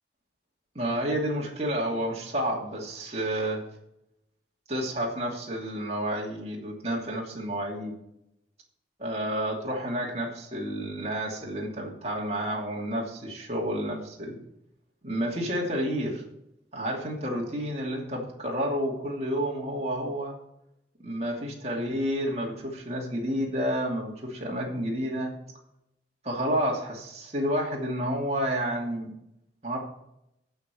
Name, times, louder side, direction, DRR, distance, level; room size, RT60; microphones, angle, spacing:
voice 1, 0.7-3.6 4.7-8.0 9.0-14.4 15.0-16.2 16.7-20.4 21.0-25.3 26.2-29.1 29.6-29.8, equal, 35° right, -2 dB, 2.7 m, -30 dB
14.5 x 5.7 x 6.9 m, 0.80 s
head